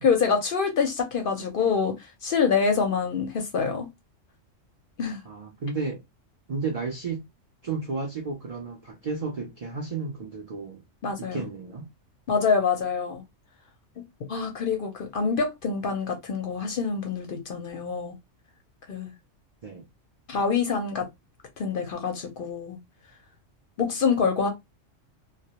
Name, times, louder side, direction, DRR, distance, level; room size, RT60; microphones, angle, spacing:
voice 1, 0.0-3.9 5.0-5.2 11.0-11.4 12.3-13.2 14.0-14.1 14.3-18.1 18.9-19.1 20.3-21.1 21.6-22.8 23.8-24.5, left 5 dB, 55° left, 0.6 m, -26 dB
voice 2, 5.2-6.0 6.5-7.2 7.6-10.8 11.2-11.9 19.6-19.8, right 4 dB, 70° right, 0.3 m, -32 dB
2.2 x 2.0 x 2.8 m
omnidirectional pair, 1.3 m